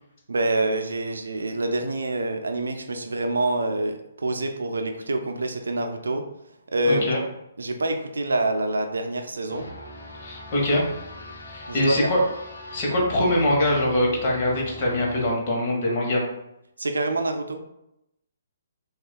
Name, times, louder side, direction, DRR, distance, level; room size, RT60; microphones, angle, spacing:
voice 1, 0.3-6.2 6.7-7.0 7.6-9.7 11.7-12.1 16.8-17.6, right 2 dB, 65° right, 5 dB, 0.4 m, -26 dB
voice 2, 6.8-7.2 10.2-10.8 11.5-12.2 12.7-16.2, left 1 dB, 35° left, -2 dB, 1.2 m, -23 dB
sound 1, 9.5-15.3, left 1 dB, 65° left, 0.8 m, -41 dB
6.0 x 2.4 x 2.2 m, 0.85 s
figure-of-eight pair, 130°, 0 cm